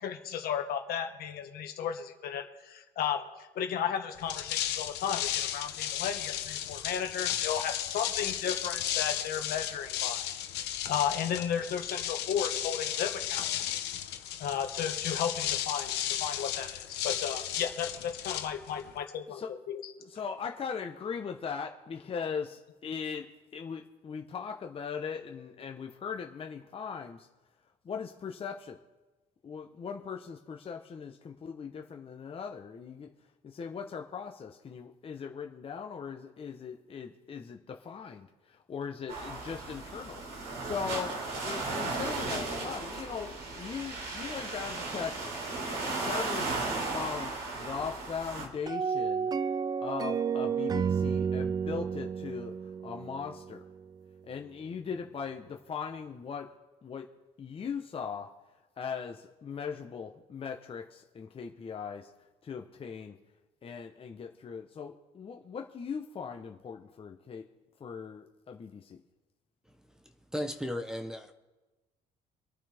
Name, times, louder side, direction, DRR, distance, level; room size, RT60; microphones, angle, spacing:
voice 1, 0.0-10.3 10.9-13.5 14.4-19.9, left 8 dB, 65° left, 5 dB, 1.5 m, -34 dB
sound 1, 4.2-19.0, left 11 dB, 85° left, 1.0 m, -34 dB
voice 2, 20.0-23.3 23.5-27.3 27.8-28.8 29.4-33.1 33.4-40.2 40.6-45.5 45.9-46.5 46.9-49.4 49.8-53.6 54.2-56.5 56.8-57.1 57.4-58.3 58.8-62.1 62.4-63.1 63.6-67.5 67.8-69.0, left 6 dB, 35° left, 3 dB, 0.9 m, -39 dB
sound 2, 39.1-48.5, right 3 dB, 85° right, 3.4 m, -35 dB
sound 3, 48.7-53.8, right 6 dB, 25° right, 0.3 m, -31 dB
voice 3, 69.8-71.3, equal, 5° right, 4 dB, 0.9 m, -36 dB
26.0 x 9.1 x 3.5 m, 1.2 s
cardioid pair, 110°, 17 cm